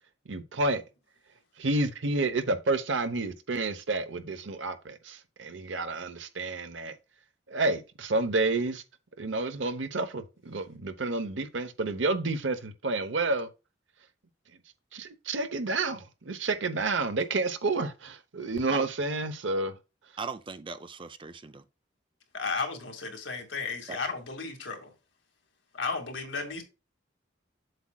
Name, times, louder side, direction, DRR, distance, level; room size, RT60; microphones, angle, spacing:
voice 1, 0.3-0.8 1.6-6.9 7.5-8.8 9.2-13.5 14.9-19.8, right 3 dB, 80° right, 0.9 m, -30 dB
voice 2, 20.2-21.6 23.9-24.0, right 5 dB, 25° right, 0.5 m, -39 dB
voice 3, 22.3-24.9 25.7-26.6, left 4 dB, 75° left, 2.1 m, -34 dB
7.8 x 7.4 x 2.3 m
head